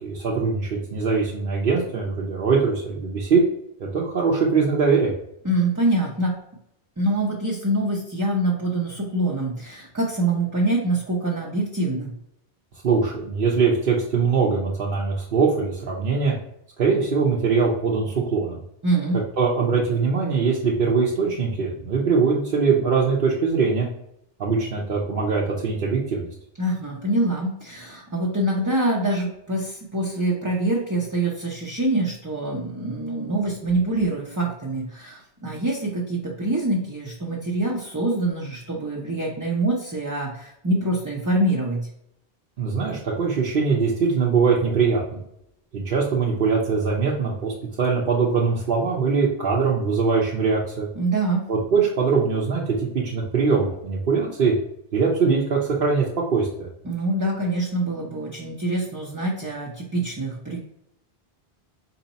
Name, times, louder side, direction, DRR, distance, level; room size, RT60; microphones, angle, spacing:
voice 1, 0.0-3.4 3.9-5.1 12.8-16.3 16.8-18.6 19.4-23.9 24.4-26.3 42.6-45.0 45.7-50.9 51.5-54.5 54.9-56.7, right 5 dB, 60° right, -4 dB, 0.9 m, -22 dB
voice 2, 5.4-6.3 7.0-12.1 18.8-19.2 26.6-41.9 51.0-51.5 56.8-60.6, right 2 dB, 20° right, -3 dB, 0.6 m, -25 dB
4.4 x 2.8 x 4.0 m, 0.77 s
omnidirectional pair, 1.1 m